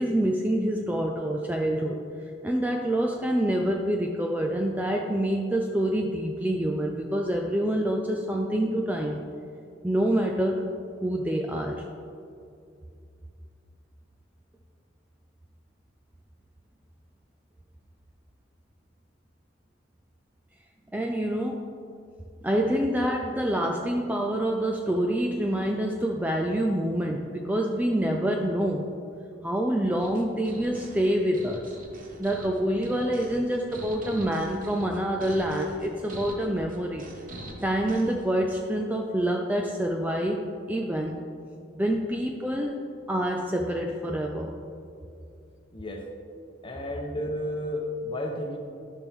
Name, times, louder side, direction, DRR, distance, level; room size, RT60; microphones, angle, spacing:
voice 1, 0.0-2.0 2.4-9.2 9.8-10.7 11.0-11.8 20.9-21.6 22.4-28.9 29.4-31.7 32.2-37.1 37.6-41.2 41.7-42.7 43.1-44.5, right 1 dB, 10° right, 1 dB, 0.3 m, -26 dB
sound 1, 30.0-38.2, right 1 dB, 45° right, 1.0 m, -43 dB
voice 2, 45.7-46.1 46.6-48.6, left 1 dB, 25° left, 1 dB, 1.0 m, -32 dB
12.0 x 6.1 x 3.6 m, 2.5 s
head